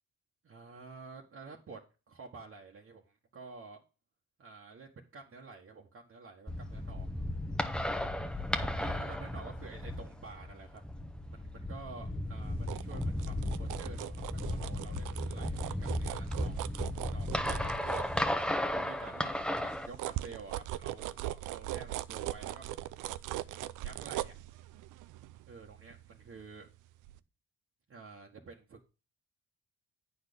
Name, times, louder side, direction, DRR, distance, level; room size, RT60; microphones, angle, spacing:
voice 1, 0.4-1.8 2.1-3.8 4.4-7.1 7.8-8.2 8.6-10.8 11.3-16.5 17.1-17.9 18.6-22.6 23.4-24.3 25.5-26.7 27.9-28.9, right 4 dB, 45° right, -1 dB, 1.5 m, -50 dB
sound 1, 6.5-19.9, left 1 dB, 5° left, 1.1 m, -35 dB
sound 2, 12.4-18.7 19.1-26.7 27.0-27.2, right 14 dB, 85° right, 0.5 m, -40 dB
9.3 x 4.3 x 6.9 m, 0.32 s
cardioid pair, 90°, 30 cm